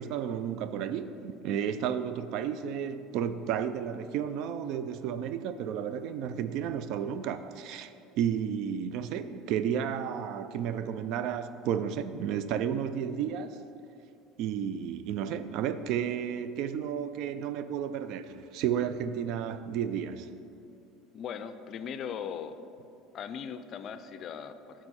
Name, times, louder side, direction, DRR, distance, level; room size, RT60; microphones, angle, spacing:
voice 1, 0.0-13.6 14.4-20.3, right 8 dB, 65° right, 0.3 m, -32 dB
voice 2, 21.1-22.6 23.1-24.9, left 7 dB, 50° left, 0.4 m, -39 dB
8.6 x 4.6 x 4.2 m
hypercardioid pair, 80°, 0 cm